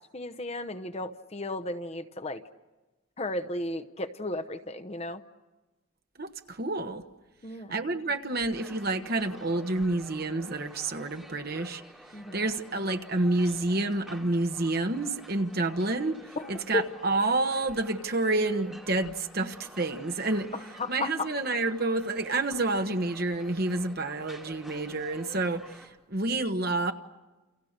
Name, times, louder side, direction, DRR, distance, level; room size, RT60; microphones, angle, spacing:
voice 1, 0.1-2.4 3.2-5.2 7.4-7.8 12.1-12.4 16.4-16.9 20.8-21.3, left 2 dB, 30° left, 10 dB, 0.8 m, -34 dB
voice 2, 6.2-7.0 7.7-11.8 12.3-16.2 16.5-20.5 20.9-26.9, right 2 dB, 45° right, 7 dB, 1.3 m, -29 dB
sound 1, 8.5-25.9, equal, ahead, 3.1 m, -50 dB
30.0 x 29.0 x 6.7 m, 1.1 s
head